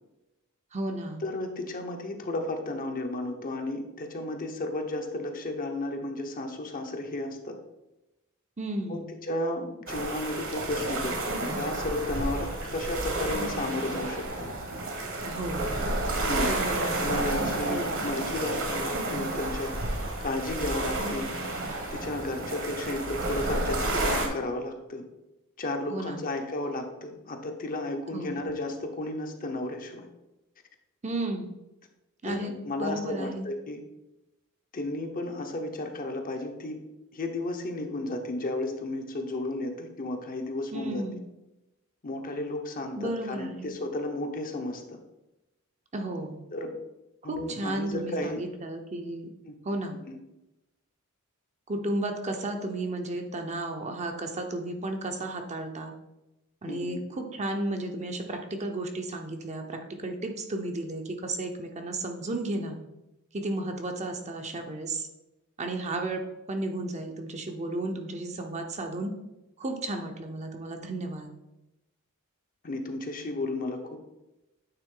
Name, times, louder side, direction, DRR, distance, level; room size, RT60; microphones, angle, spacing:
voice 1, 0.7-1.2 8.6-9.1 15.3-15.7 16.4-17.1 17.7-18.0 25.9-26.2 28.1-28.4 31.0-31.5 32.2-33.5 40.7-41.2 43.0-43.8 45.9-46.5 47.2-49.3 49.6-50.0 51.7-55.9 56.6-62.8 63.3-65.1 65.6-69.1 69.6-71.3, right 2 dB, 30° right, 4 dB, 0.7 m, -33 dB
voice 2, 1.2-7.5 8.9-14.5 16.3-16.5 17.0-19.7 20.2-21.3 21.9-25.0 25.6-30.1 32.2-33.8 34.7-36.8 37.1-41.0 42.0-45.0 46.5-46.8 47.2-48.4 49.5-49.6 50.1-50.2 56.7-57.0 72.6-74.0, left 2 dB, 40° left, 4 dB, 0.8 m, -33 dB
sound 1, 9.9-24.3, right 2 dB, 65° right, 1.4 m, -31 dB
9.0 x 3.6 x 3.8 m, 0.96 s
head